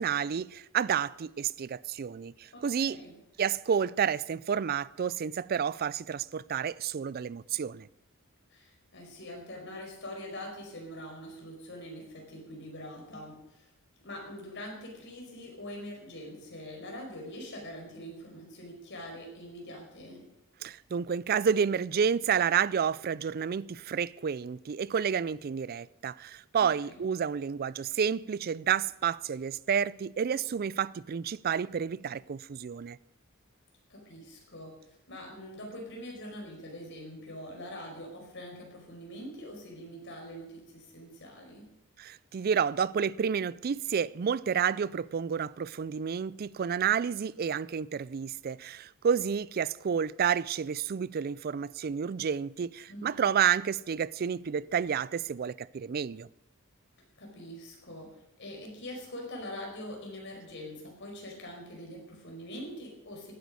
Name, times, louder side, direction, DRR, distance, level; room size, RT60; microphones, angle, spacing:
voice 1, 0.0-3.0 3.4-7.9 20.6-33.0 42.0-56.3, right 7 dB, 45° right, 0.4 m, -30 dB
voice 2, 2.5-3.1 8.5-13.7 14.0-20.3 26.6-27.0 33.9-41.7 52.9-53.3 57.2-58.1 58.4-63.3, left 1 dB, 55° left, 4.9 m, -44 dB
15.0 x 9.4 x 6.2 m
head